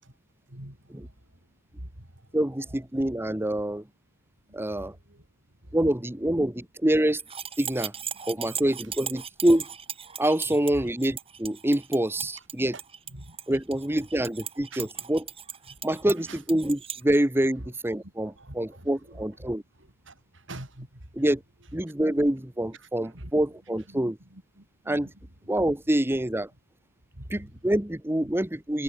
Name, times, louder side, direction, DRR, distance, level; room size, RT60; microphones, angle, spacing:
voice 1, 0.5-1.4 1.8-2.4 2.7-2.8 4.5-6.0 8.3-8.6 10.1-10.6 12.2-12.3 12.7-12.8 13.1-13.4 14.7-14.9 15.7-15.8 16.1-16.4 17.6-17.7 18.0-21.2 21.9-22.0 22.8-23.3 23.7-25.5 27.1-27.5 28.2-28.3, right 1 dB, 70° right, 4.8 m, -47 dB
voice 2, 2.3-3.8 4.5-4.9 5.7-7.2 7.6-7.9 8.3-9.6 10.2-12.7 13.5-15.3 15.8-19.6 21.2-21.4 21.7-24.2 24.9-25.1 25.5-26.5 27.3-28.8, right 1 dB, 10° right, 1.1 m, -26 dB
sound 1, 7.2-17.0, right 8 dB, 30° right, 7.1 m, -38 dB
head